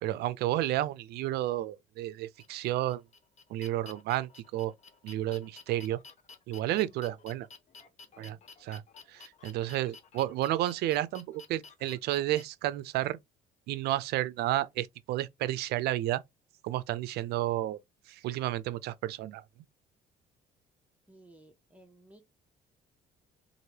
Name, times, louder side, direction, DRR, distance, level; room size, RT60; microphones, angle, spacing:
voice 1, 0.0-3.0 3.5-4.7 5.0-6.0 6.5-7.5 8.2-8.8 9.1-13.2 13.7-16.2 16.6-17.8 18.1-19.4, right 14 dB, 75° right, 0.5 m, -31 dB
sound 1, 2.4-12.4, left 4 dB, 45° left, 0.7 m, -52 dB
voice 2, 21.1-22.3, right 1 dB, 10° right, 0.6 m, -57 dB
3.1 x 2.5 x 2.8 m
cardioid pair, 110°, 17 cm